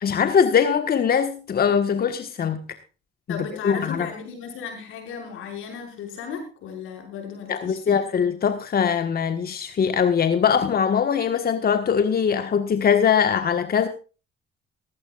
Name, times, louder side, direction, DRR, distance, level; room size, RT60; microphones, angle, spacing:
voice 1, 0.0-2.6 3.6-4.1 7.5-13.9, left 7 dB, 50° left, 8 dB, 1.5 m, -21 dB
voice 2, 3.3-8.0, left 6 dB, 90° left, 4 dB, 5.8 m, -35 dB
17.0 x 15.5 x 2.5 m, 0.34 s
cardioid pair, 90°, 20 cm